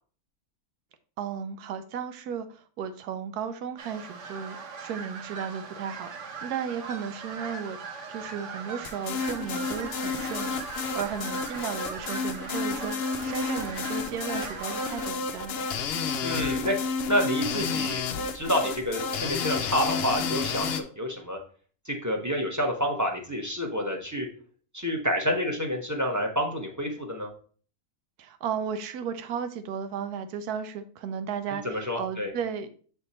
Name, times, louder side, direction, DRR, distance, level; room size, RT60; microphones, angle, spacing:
voice 1, 1.2-7.8 8.1-15.7 28.2-31.6 32.0-32.7, right 7 dB, 85° right, 10 dB, 1.2 m, -34 dB
sound 1, 3.8-15.1, right 5 dB, 55° right, 1.1 m, -40 dB
sound 2, 8.8-20.8, left 5 dB, 65° left, 0.6 m, -31 dB
voice 2, 16.2-16.8 17.1-21.4 21.8-24.3 24.7-27.3 31.5-32.3, equal, 15° right, 1 dB, 0.8 m, -28 dB
7.2 x 3.5 x 4.2 m, 0.42 s
omnidirectional pair, 1.6 m